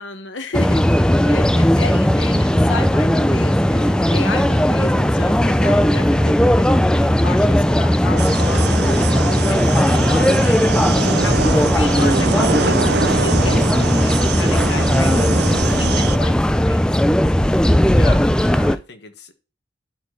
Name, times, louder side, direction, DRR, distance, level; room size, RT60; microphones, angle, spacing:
voice 1, 0.0-17.0, left 3 dB, 75° left, 8 dB, 1.0 m, -32 dB
sound 1, 0.5-18.8, equal, 5° left, 0.3 m, -17 dB
sound 2, 8.2-16.2, right 5 dB, 55° right, 0.5 m, -24 dB
voice 2, 17.9-19.3, left 3 dB, 60° left, 8 dB, 1.4 m, -35 dB
12.0 x 4.4 x 3.2 m, 0.34 s
head